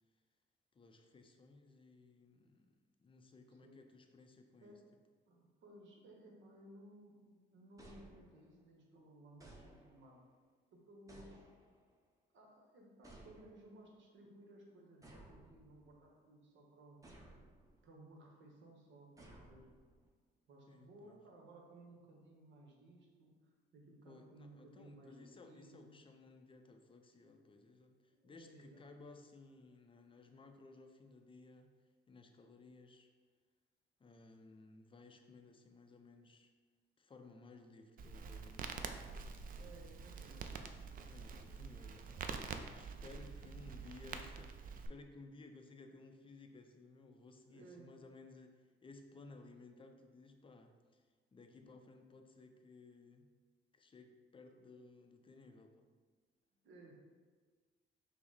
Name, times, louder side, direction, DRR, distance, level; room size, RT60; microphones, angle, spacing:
voice 1, 0.7-2.7 3.0-4.7 20.7-21.2 24.0-31.7 32.1-33.1 34.0-36.5 37.0-38.8 41.1-42.1 42.7-51.0 51.3-53.3 53.7-55.9, left 3 dB, 25° left, 5 dB, 0.5 m, -58 dB
voice 2, 5.3-10.2 10.7-11.5 12.3-17.0 17.8-19.7 20.5-26.0 28.1-29.2 39.5-40.5 40.8-41.3 43.2-43.5 47.4-47.9 51.6-51.8 56.6-57.0, right 1 dB, 70° right, -1 dB, 1.0 m, -59 dB
sound 1, 7.8-8.7 9.4-10.2 11.1-11.9 13.0-13.8 15.0-16.0 17.0-17.8 19.2-20.1, right 2 dB, 15° right, 0.8 m, -59 dB
Crackle, 38.0-44.9, right 5 dB, 45° right, 0.4 m, -47 dB
5.7 x 2.1 x 4.0 m, 1.5 s
cardioid pair, 90°, 20 cm